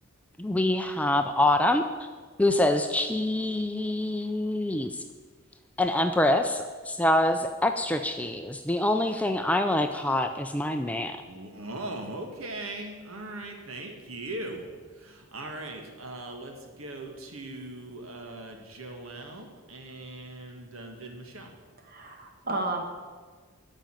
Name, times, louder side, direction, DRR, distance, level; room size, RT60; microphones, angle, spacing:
voice 1, 0.4-2.1 2.4-5.0 5.8-11.2, left 1 dB, 5° left, 6 dB, 0.4 m, -25 dB
voice 2, 11.2-14.7 14.9-21.5, right 2 dB, 75° right, 3 dB, 1.8 m, -40 dB
voice 3, 21.8-22.8, right 2 dB, 45° right, 3 dB, 1.6 m, -32 dB
12.5 x 5.3 x 9.0 m, 1.5 s
head